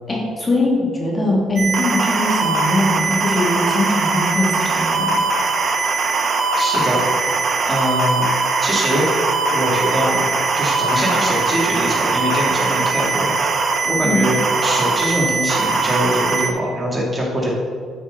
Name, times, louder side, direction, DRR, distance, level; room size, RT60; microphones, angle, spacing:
voice 1, 0.1-5.2 14.0-14.3, left 1 dB, 25° left, -3 dB, 2.4 m, -21 dB
sound 1, 1.6-16.5, right 4 dB, 50° right, 1.3 m, -20 dB
voice 2, 6.6-7.0 7.7-8.3 8.6-9.1 9.5-10.3 10.5-13.3 13.8-17.5, equal, 20° right, -3 dB, 2.6 m, -22 dB
12.0 x 6.1 x 4.0 m, 2.2 s
cardioid pair, 90°, 0 cm